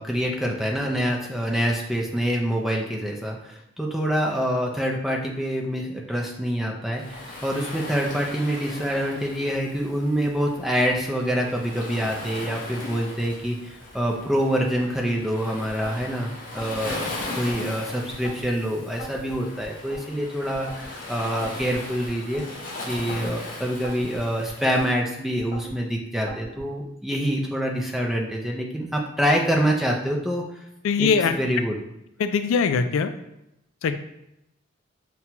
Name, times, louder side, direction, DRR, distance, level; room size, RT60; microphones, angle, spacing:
voice 1, 0.0-22.4 22.9-30.4 31.0-31.7, equal, ahead, -1 dB, 0.4 m, -26 dB
Waves surf, 7.0-25.0, left 2 dB, 40° left, 0.7 m, -38 dB
sound 1, 15.7-16.1 16.6-17.6 18.1-18.5 19.0-20.0 20.5-20.9 21.4-22.5 22.9-23.4 23.8-24.9 25.4-25.8 26.3-26.7, equal, 20° right, 0.9 m, -40 dB
voice 2, 30.8-31.4 32.2-33.1 33.8-34.0, left 5 dB, 85° left, 9 dB, 0.3 m, -21 dB
5.7 x 2.3 x 2.8 m, 0.85 s
head